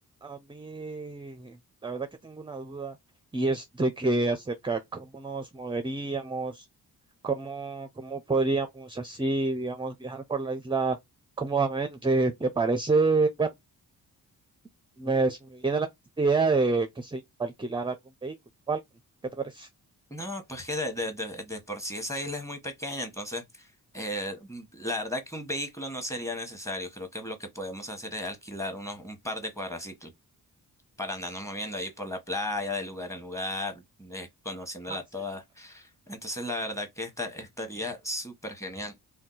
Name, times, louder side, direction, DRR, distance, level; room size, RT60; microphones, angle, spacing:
voice 1, 0.2-1.6 1.8-2.9 3.3-6.6 7.2-11.0 11.4-13.5 15.0-15.9 16.2-17.9 18.2-18.3 18.7-18.8 19.4-19.7 34.9-35.0, right 3 dB, 15° right, 0.4 m, -28 dB
voice 2, 20.1-30.1 31.0-38.9, left 1 dB, 10° left, 1.1 m, -35 dB
2.7 x 2.2 x 3.9 m
cardioid pair, 65°, 39 cm